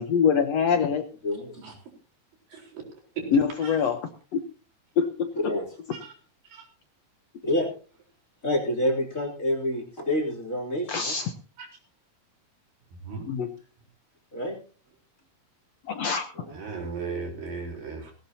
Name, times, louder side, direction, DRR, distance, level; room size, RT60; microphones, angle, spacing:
voice 1, 0.0-1.0 3.3-4.0 4.3-4.4 5.0-5.3 10.9-11.3 13.3-13.5 15.9-16.3, left 6 dB, 65° left, 7 dB, 1.8 m, -24 dB
voice 2, 2.5-2.8 3.6-3.8 5.9-6.1 6.4-6.7 11.6-11.7 13.0-13.2 16.5-18.1, right 4 dB, 85° right, 1 dB, 6.0 m, -37 dB
voice 3, 5.3-5.7 7.4-7.7 8.4-11.1 14.3-14.6 16.3-16.6, left 1 dB, 25° left, 1 dB, 3.5 m, -28 dB
17.5 x 17.0 x 2.9 m, 0.37 s
omnidirectional pair, 3.9 m